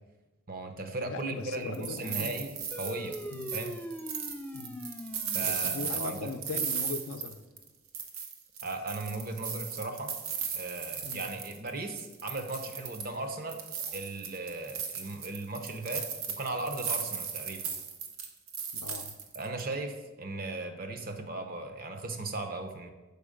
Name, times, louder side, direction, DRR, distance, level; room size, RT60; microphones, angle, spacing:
voice 1, 0.5-3.2 3.5-3.7 5.3-6.3 8.6-10.2 10.5-13.6 13.9-16.1 16.4-17.7 19.3-22.9, right 2 dB, 45° right, 7 dB, 0.7 m, -37 dB
voice 2, 1.0-2.5 3.3-3.5 4.5-4.8 5.4-7.4 11.0-11.2 18.7-19.2, left 4 dB, 90° left, 10 dB, 0.5 m, -39 dB
sound 1, 1.5-7.7 7.9-11.7 12.0-13.2 13.5-19.6, right 7 dB, 90° right, 0.9 m, -36 dB
sound 2, 2.7-7.6, equal, 5° left, 0.4 m, -43 dB
6.8 x 4.5 x 5.0 m, 1.2 s
head